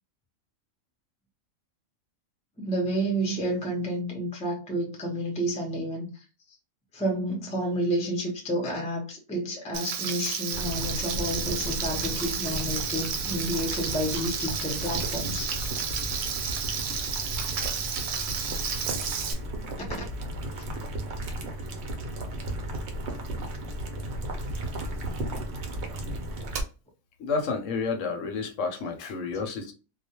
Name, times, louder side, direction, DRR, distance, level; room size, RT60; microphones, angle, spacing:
voice 1, 2.6-6.1 6.9-15.9 19.8-20.1 20.6-20.7 29.0-29.4, right 1 dB, 10° left, 0.3 m, -30 dB
Frying (food), 9.7-19.3, right 7 dB, 85° right, 1.0 m, -32 dB
Boiling, 10.5-26.6, right 1 dB, 60° right, 0.8 m, -35 dB
voice 2, 27.2-29.7, left 4 dB, 70° left, 0.9 m, -30 dB
2.3 x 2.1 x 2.8 m
omnidirectional pair, 1.4 m